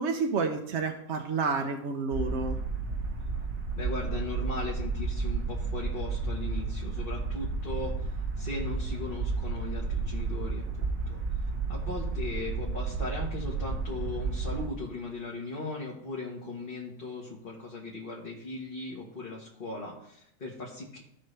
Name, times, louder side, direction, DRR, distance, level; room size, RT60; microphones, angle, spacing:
voice 1, 0.0-2.6, right 4 dB, 60° right, 4 dB, 1.0 m, -30 dB
sound 1, 2.1-14.7, right 4 dB, 90° right, 1.6 m, -32 dB
voice 2, 3.8-21.0, left 2 dB, 40° left, -3 dB, 1.6 m, -38 dB
15.5 x 5.4 x 3.3 m, 0.77 s
omnidirectional pair, 1.4 m